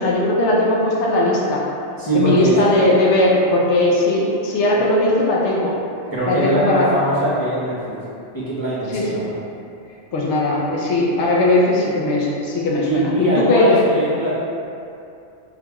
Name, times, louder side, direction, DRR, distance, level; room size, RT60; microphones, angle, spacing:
voice 1, 0.0-1.6 2.1-5.7 6.3-6.9 8.9-9.2 10.1-13.6, left 1 dB, 75° left, -3 dB, 0.9 m, -18 dB
voice 2, 2.0-2.6 4.7-4.8 6.1-8.0 8.3-9.3 12.9-14.3, right 1 dB, 25° left, -12 dB, 0.5 m, -21 dB
3.7 x 2.2 x 2.9 m, 2.7 s
omnidirectional pair, 1.2 m